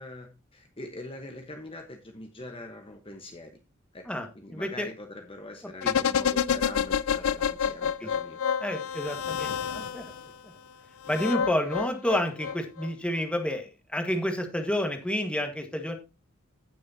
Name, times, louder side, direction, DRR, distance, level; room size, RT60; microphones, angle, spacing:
voice 1, 0.0-3.6 3.9-8.4, left 2 dB, 25° left, 4 dB, 1.1 m, -43 dB
voice 2, 4.5-4.9 5.8-5.9 8.0-8.1 8.6-10.0 11.1-15.9, equal, 5° left, 5 dB, 1.4 m, -30 dB
sound 1, 5.8-10.2 11.0-12.9 13.2-13.3, left 7 dB, 75° left, 0.4 m, -28 dB
16.5 x 6.3 x 2.7 m, 0.26 s
head